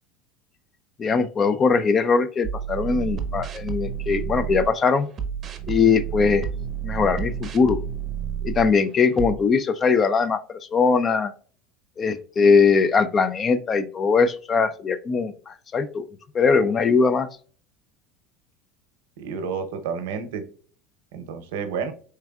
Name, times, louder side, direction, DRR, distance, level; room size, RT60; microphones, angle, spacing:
voice 1, 1.0-5.1 5.7-6.5 6.8-7.8 8.4-10.4 10.7-11.3 12.0-16.1 16.3-17.3, left 5 dB, 30° left, 14 dB, 0.3 m, -21 dB
sound 1, 2.4-4.7 5.2-8.7 9.2-9.4, right 8 dB, 30° right, 0.6 m, -30 dB
voice 2, 19.2-20.4 21.1-21.9, right 6 dB, 85° right, 8 dB, 0.7 m, -30 dB
4.4 x 3.4 x 2.3 m, 0.43 s
supercardioid pair, 130°, 0 cm